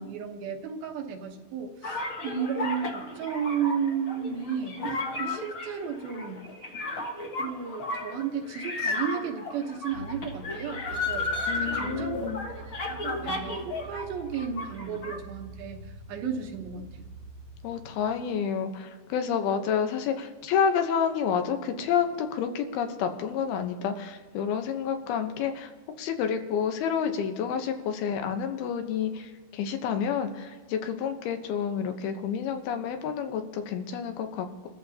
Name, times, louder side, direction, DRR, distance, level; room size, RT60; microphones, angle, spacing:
voice 1, 0.0-6.4 7.4-12.2 12.5-12.7 13.0-17.1, right 7 dB, 80° right, 2 dB, 2.9 m, -33 dB
sound 1, 1.8-14.0 14.3-15.2, left 2 dB, 50° left, 1.5 m, -33 dB
sound 2, 9.9-18.0, right 3 dB, 55° right, 2.0 m, -45 dB
voice 2, 11.5-12.4 17.6-25.7 26.0-34.7, left 7 dB, 85° left, 6 dB, 2.9 m, -29 dB
28.5 x 14.0 x 2.8 m, 1.4 s
omnidirectional pair, 4.3 m